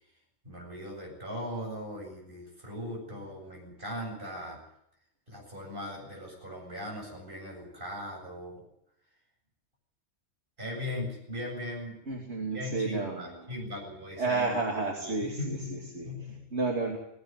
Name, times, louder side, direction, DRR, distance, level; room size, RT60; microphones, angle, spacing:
voice 1, 0.4-4.6 5.3-8.6 10.6-12.0 12.5-14.6 15.0-16.4, left 1 dB, 50° right, 0 dB, 8.2 m, -39 dB
voice 2, 12.1-13.5 14.2-16.1 16.5-17.0, right 3 dB, 80° right, 0 dB, 3.0 m, -31 dB
18.0 x 17.5 x 9.8 m, 0.77 s
omnidirectional pair, 1.1 m